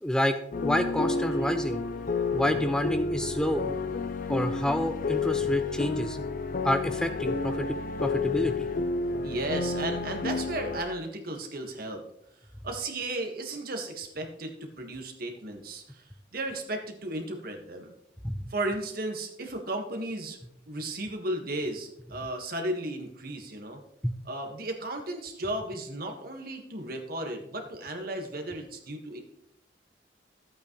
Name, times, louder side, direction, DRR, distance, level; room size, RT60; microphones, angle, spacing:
voice 1, 0.0-1.8 2.3-3.8 4.3-6.2 6.6-7.7 8.0-8.7 18.2-18.4 24.0-24.2, left 1 dB, 5° left, 8 dB, 0.4 m, -28 dB
sound 1, 0.5-10.8, left 4 dB, 50° left, 0.6 m, -30 dB
voice 2, 9.2-12.0 12.6-16.0 16.3-17.9 18.5-20.4 20.7-23.8 24.2-29.2, right 1 dB, 55° right, 4 dB, 1.6 m, -34 dB
12.5 x 8.5 x 3.1 m, 0.76 s
head